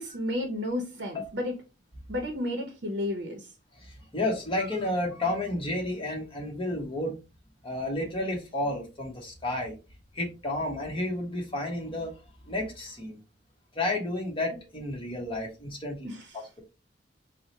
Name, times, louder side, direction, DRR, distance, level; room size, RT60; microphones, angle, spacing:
voice 1, 0.0-1.5 2.1-3.5 16.0-16.2, left 1 dB, 60° right, 0.7 m, -32 dB
voice 2, 3.8-7.1 7.6-9.7 10.1-12.2 12.5-13.2 13.7-16.6, left 1 dB, 25° left, 1.0 m, -31 dB
4.6 x 2.1 x 2.8 m
head